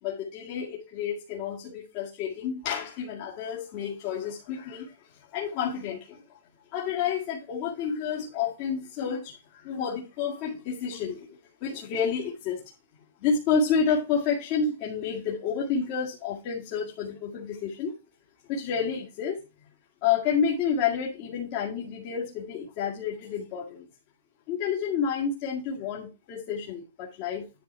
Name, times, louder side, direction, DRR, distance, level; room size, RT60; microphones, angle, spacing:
voice 1, 0.0-6.4 6.7-12.7 13.2-17.9 18.5-19.5 20.0-23.9 24.5-27.6, left 6 dB, 35° left, -3 dB, 2.0 m, -30 dB
10.5 x 4.1 x 4.4 m, 0.27 s
hypercardioid pair, 160°, 0 cm